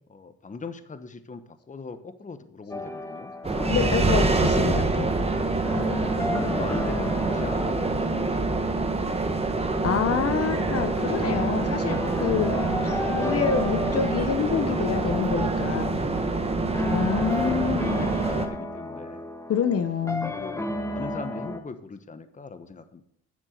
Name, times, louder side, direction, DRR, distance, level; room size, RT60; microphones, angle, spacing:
voice 1, 0.1-3.3 4.3-4.6 6.2-9.3 12.9-13.1 15.6-16.2 16.6-17.0 17.3-19.3 20.0-20.6 20.9-23.0, left 4 dB, 25° left, 11 dB, 1.1 m, -39 dB
sound 1, 2.7-21.6, left 1 dB, 10° left, 1.5 m, -33 dB
sound 2, 3.4-18.5, right 3 dB, 20° right, 1.4 m, -26 dB
voice 2, 3.7-5.1 9.8-12.5 12.8-16.0 16.9-18.1 19.5-20.3, left 7 dB, 50° left, 9 dB, 1.0 m, -27 dB
9.7 x 7.4 x 6.5 m, 0.68 s
cardioid pair, 90°, 30 cm